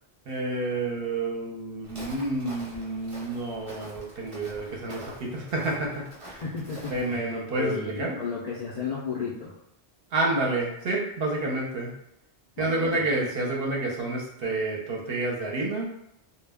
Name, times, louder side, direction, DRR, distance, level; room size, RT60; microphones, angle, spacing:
voice 1, 0.3-6.4 6.9-8.2 10.1-11.9 12.6-15.9, right 2 dB, 65° right, -1 dB, 0.8 m, -29 dB
Walk footsteps, 1.8-7.2, right 1 dB, 30° right, 0.8 m, -45 dB
voice 2, 6.4-9.5 12.6-13.0, left 5 dB, 60° left, -6 dB, 0.4 m, -33 dB
2.1 x 2.1 x 3.4 m, 0.77 s
omnidirectional pair, 1.1 m